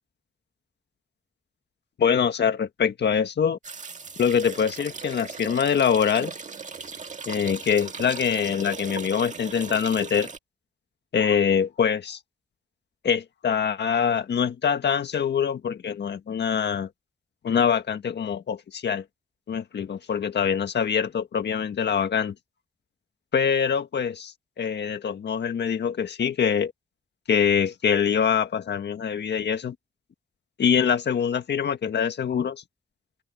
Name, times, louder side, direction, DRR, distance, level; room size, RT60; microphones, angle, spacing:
voice 1, 2.0-3.6 4.2-6.3 7.3-10.3 11.1-12.2 13.0-16.9 17.4-19.0 19.5-22.3 23.3-26.7 27.3-29.7 30.6-32.6, left 7 dB, 85° left, 1.6 m, -24 dB
sound 1, 3.6-10.4, right 5 dB, 45° right, 1.8 m, -38 dB
open air
wide cardioid pair, 175°, 17 cm